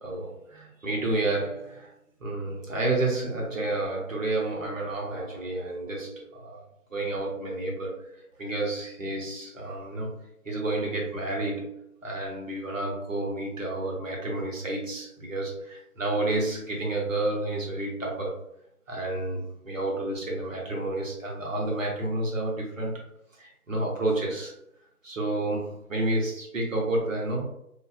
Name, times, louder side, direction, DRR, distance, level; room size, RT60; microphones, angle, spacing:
voice 1, 0.0-1.9 2.2-18.4 18.9-23.0 23.3-24.5 25.0-27.5, right 2 dB, 55° right, -2 dB, 1.0 m, -30 dB
2.6 x 2.4 x 2.3 m, 0.77 s
figure-of-eight pair, 165°, 46 cm